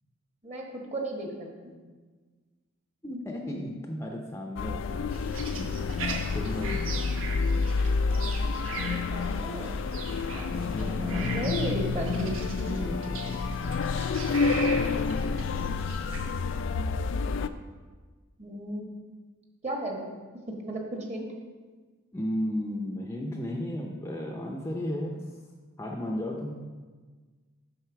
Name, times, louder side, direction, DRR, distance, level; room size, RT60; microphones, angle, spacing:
voice 1, 0.4-1.7 8.6-9.7 10.8-12.4 18.4-18.9 19.6-20.1 20.6-21.3, right 1 dB, 30° right, 0 dB, 1.2 m, -34 dB
voice 2, 3.0-5.1 5.3-5.7 6.0-6.8 10.3-10.7 12.6-13.4 22.1-25.2 25.8-26.5, left 1 dB, 15° left, 1 dB, 0.5 m, -34 dB
sound 1, 4.6-17.5, left 4 dB, 65° left, 0.3 m, -29 dB
sound 2, 5.1-16.2, right 3 dB, 75° right, 1.0 m, -39 dB
7.8 x 4.1 x 5.8 m, 1.4 s
head